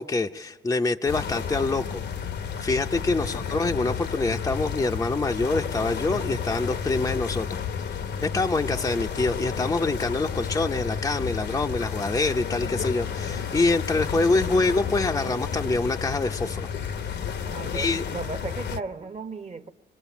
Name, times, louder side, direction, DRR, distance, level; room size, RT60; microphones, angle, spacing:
voice 1, 0.0-2.0 2.6-7.6 8.2-16.7 17.7-18.0, left 3 dB, 15° left, 0.6 m, -25 dB
sound 1, 1.1-18.8, left 7 dB, 60° left, 0.8 m, -31 dB
voice 2, 3.2-3.5 17.4-19.7, right 4 dB, 35° right, 1.1 m, -36 dB
25.5 x 21.0 x 7.1 m
cardioid pair, 90°, 20 cm